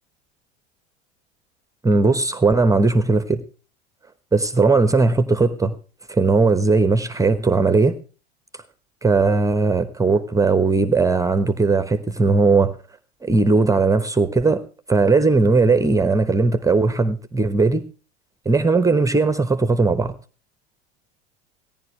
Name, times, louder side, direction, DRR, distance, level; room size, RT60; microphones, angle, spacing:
voice 1, 1.8-3.4 4.3-5.7 6.1-8.0 9.0-12.7 13.2-14.6 14.9-17.8 18.4-20.1, right 3 dB, 10° right, 11 dB, 1.0 m, -18 dB
17.5 x 11.0 x 3.2 m, 0.37 s
figure-of-eight pair, 80°, 32 cm